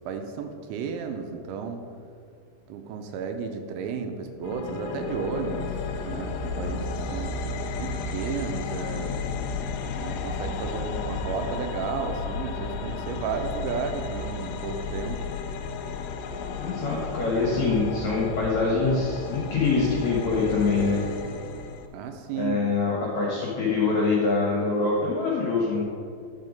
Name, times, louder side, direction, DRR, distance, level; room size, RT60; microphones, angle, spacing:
voice 1, 0.1-1.8 2.7-5.8 6.0-7.4 7.7-9.2 9.9-15.2 21.9-22.6, right 5 dB, 85° right, 5 dB, 3.0 m, -33 dB
sound 1, 4.4-21.9, left 4 dB, 80° left, 2.7 m, -33 dB
voice 2, 16.6-21.0 22.3-25.8, left 4 dB, 65° left, -5 dB, 1.8 m, -24 dB
10.5 x 5.7 x 5.2 m, 2.4 s
omnidirectional pair, 5.4 m